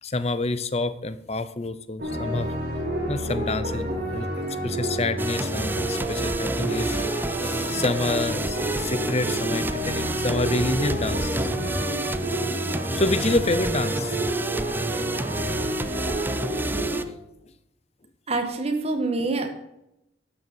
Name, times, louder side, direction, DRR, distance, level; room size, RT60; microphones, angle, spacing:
voice 1, 0.0-2.5 3.1-4.3 4.6-11.7 12.5-12.6 12.9-14.1 14.7-15.1, left 2 dB, 35° left, 13 dB, 0.8 m, -28 dB
sound 1, 2.0-17.0, right 1 dB, 60° right, 5.0 m, -29 dB
sound 2, 5.2-17.0, right 2 dB, 10° right, 0.5 m, -30 dB
voice 2, 18.3-19.5, right 3 dB, 35° right, 5 dB, 1.8 m, -25 dB
12.0 x 7.0 x 7.9 m, 0.86 s
head